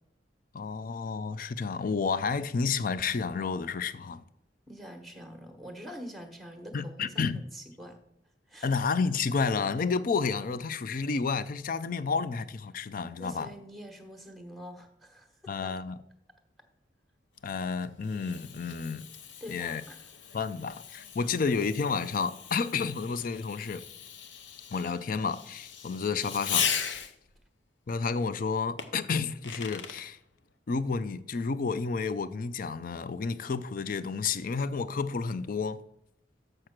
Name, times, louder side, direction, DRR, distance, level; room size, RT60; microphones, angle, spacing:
voice 1, 0.5-4.2 6.7-7.4 8.6-13.5 15.5-16.0 17.4-19.0 19.5-19.8 20.3-23.8 24.7-27.1 27.9-30.2 30.7-35.8, left 5 dB, 50° left, 0.4 m, -31 dB
voice 2, 4.7-8.0 8.5-8.7 13.2-15.7 19.4-20.0, equal, ahead, 1.2 m, -45 dB
Fireworks, 17.4-27.4 28.8-30.1, left 8 dB, 75° left, 0.7 m, -38 dB
6.6 x 6.4 x 5.9 m
head